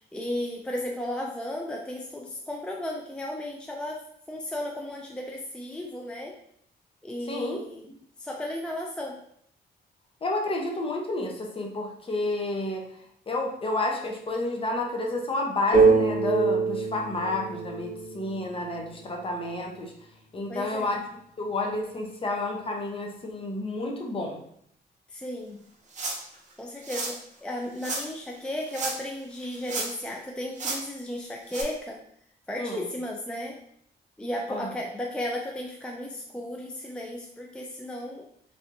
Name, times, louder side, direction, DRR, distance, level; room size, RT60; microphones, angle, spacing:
voice 1, 0.0-4.0 4.3-6.3 7.0-7.8 8.2-9.2 20.5-21.0 25.1-25.6 26.6-32.0 32.5-33.6 34.2-38.2, left 1 dB, 5° left, 0 dB, 0.4 m, -34 dB
voice 2, 7.3-7.6 10.2-12.9 13.3-19.9 20.3-21.0 21.4-24.4 32.6-32.9 34.5-34.7, left 2 dB, 30° left, 1 dB, 0.7 m, -30 dB
sound 1, 15.7-19.4, right 4 dB, 85° left, 1.5 m, -24 dB
sound 2, 25.9-26.3 26.8-27.2 27.8-28.0 28.7-29.1 29.4-30.1 30.5-30.8 31.5-31.6, right 3 dB, 45° right, 0.7 m, -32 dB
3.3 x 2.8 x 2.6 m, 0.68 s
cardioid pair, 95°, 17 cm